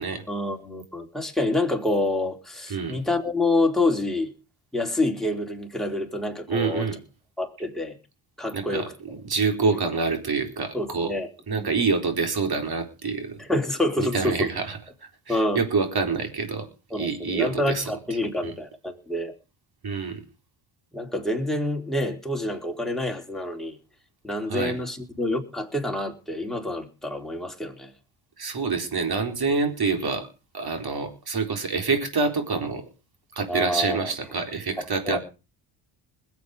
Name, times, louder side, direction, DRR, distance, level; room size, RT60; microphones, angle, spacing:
voice 1, 0.3-4.3 4.7-6.9 7.4-8.0 8.4-8.9 9.7-9.8 10.7-11.8 13.4-14.5 15.3-15.6 16.9-19.3 20.9-23.8 24.2-27.9 33.5-34.1 34.8-35.2, left 2 dB, ahead, 1 dB, 4.1 m, -27 dB
voice 2, 6.5-7.0 8.5-11.1 11.5-13.4 14.0-14.8 15.3-16.6 17.0-17.9 18.4-18.5 19.8-20.2 24.5-24.7 28.4-30.3 30.5-32.8 33.4-35.2, right 4 dB, 45° right, 5 dB, 4.3 m, -26 dB
21.0 x 8.4 x 5.1 m, 0.33 s
supercardioid pair, 60°, 50 cm